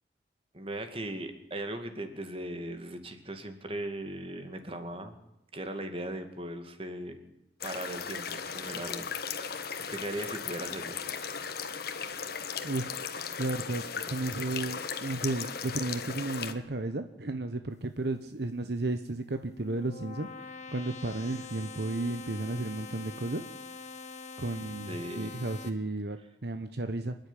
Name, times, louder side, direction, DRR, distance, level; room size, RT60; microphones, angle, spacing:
voice 1, 0.5-5.2 5.5-7.2 7.6-9.1 9.3-11.0 24.9-25.3, right 1 dB, 30° right, 7 dB, 2.3 m, -38 dB
sound 1, 7.6-16.5, left 6 dB, 55° left, 1.5 m, -37 dB
voice 2, 12.6-13.0 13.4-23.4 24.4-27.2, right 2 dB, 60° right, 8 dB, 1.0 m, -33 dB
sound 2, 19.2-25.7, left 5 dB, 40° left, 1.8 m, -44 dB
26.5 x 10.5 x 10.0 m, 0.89 s
head